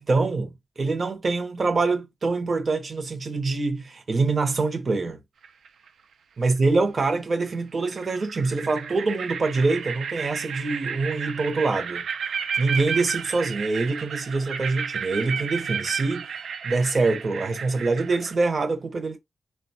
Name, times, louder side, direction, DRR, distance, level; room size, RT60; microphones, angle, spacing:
voice 1, 0.0-5.2 6.4-12.1 12.6-16.3 16.6-19.2, right 3 dB, 40° right, 0.7 m, -25 dB
sound 1, 5.4-5.9 7.4-7.5 7.9-18.4, right 6 dB, 80° right, 0.4 m, -32 dB
3.8 x 2.2 x 2.6 m
wide cardioid pair, 155°, 0 cm